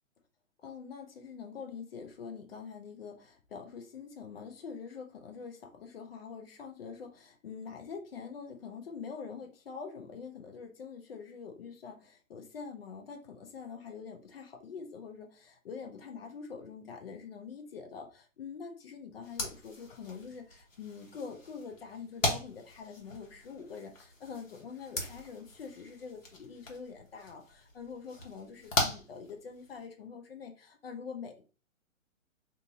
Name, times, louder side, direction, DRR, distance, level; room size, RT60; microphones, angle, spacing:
voice 1, 0.6-31.4, left 6 dB, 50° left, 3 dB, 0.6 m, -45 dB
sound 1, 19.2-29.9, left 2 dB, 80° left, 1.1 m, -39 dB
2.6 x 2.5 x 2.7 m, 0.35 s
figure-of-eight pair, 130°, 39 cm